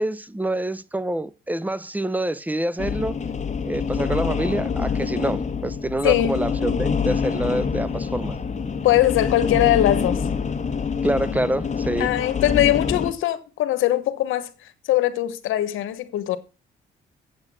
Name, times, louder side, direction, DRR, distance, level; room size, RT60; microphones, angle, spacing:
voice 1, 0.0-3.2 3.6-8.4 11.0-12.1, right 1 dB, 10° right, 0.6 m, -26 dB
sound 1, 2.8-13.1, left 6 dB, 35° left, 1.4 m, -26 dB
voice 2, 6.0-6.4 8.8-10.2 12.0-14.5 14.9-16.4, left 13 dB, 85° left, 1.1 m, -21 dB
7.8 x 7.8 x 6.1 m
cardioid pair, 90°, 20 cm